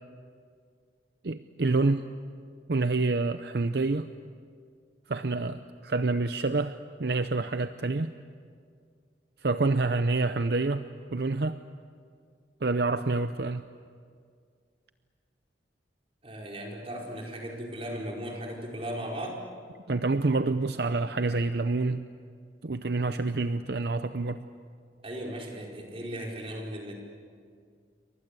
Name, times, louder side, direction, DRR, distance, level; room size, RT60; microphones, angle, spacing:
voice 1, 1.2-2.1 2.7-4.1 5.1-8.1 9.4-11.6 12.6-13.7 19.9-22.1 22.6-24.5, right 3 dB, 65° right, 10 dB, 0.7 m, -27 dB
voice 2, 16.2-19.4 25.0-26.9, equal, 35° right, -1 dB, 4.7 m, -37 dB
28.5 x 24.0 x 8.3 m, 2.1 s
head